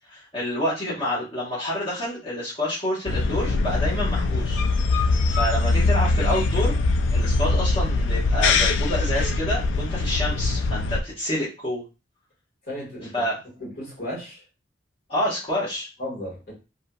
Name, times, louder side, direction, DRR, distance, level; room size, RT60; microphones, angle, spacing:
voice 1, 0.1-4.6 4.9-6.8 7.1-11.8 13.1-13.4 15.1-15.9, left 1 dB, 30° left, 0.9 m, -28 dB
sound 1, 3.1-11.0, left 3 dB, 75° left, 0.3 m, -22 dB
voice 2, 12.7-13.1 13.6-14.4 16.0-16.5, left 1 dB, 55° left, 1.6 m, -34 dB
2.7 x 2.7 x 2.2 m
head